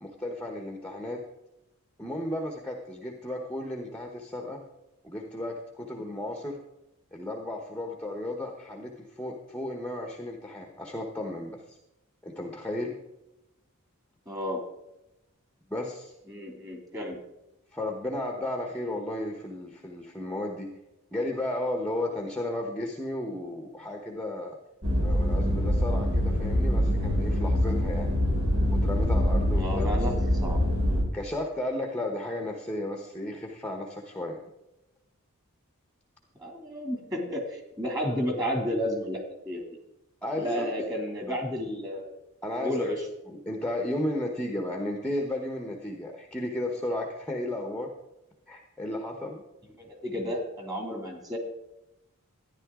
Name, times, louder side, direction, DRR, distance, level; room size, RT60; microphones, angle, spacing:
voice 1, 0.0-1.2 2.0-4.6 5.0-6.6 7.1-11.8 12.2-13.0 15.7-16.1 17.7-20.7 21.1-24.5 24.9-28.1 28.7-29.9 31.1-34.4 40.2-40.6 42.4-42.9 43.4-47.9 48.5-49.4, left 1 dB, 5° left, 2 dB, 1.0 m, -34 dB
voice 2, 14.3-14.6 16.3-17.2 29.5-30.6 36.4-39.6 40.4-42.1 42.6-43.0 49.8-51.4, equal, 15° right, 3 dB, 2.6 m, -32 dB
sound 1, 24.8-31.0, equal, 65° right, 2.7 m, -25 dB
13.5 x 10.5 x 3.7 m, 0.91 s
head